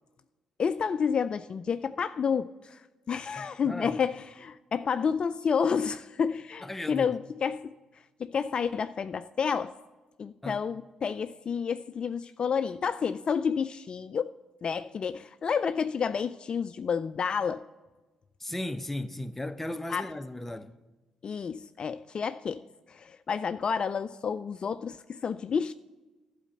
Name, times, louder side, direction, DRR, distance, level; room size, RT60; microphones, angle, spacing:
voice 1, 0.6-2.8 3.1-7.7 8.2-9.7 10.2-14.3 14.6-17.6 19.9-20.1 21.2-22.6 22.9-25.7, left 6 dB, 50° left, 0.3 m, -30 dB
voice 2, 3.4-4.0 6.6-7.2 10.4-10.6 18.4-20.7, left 1 dB, 10° left, 0.7 m, -36 dB
11.5 x 4.2 x 7.7 m
supercardioid pair, 55°, 2 cm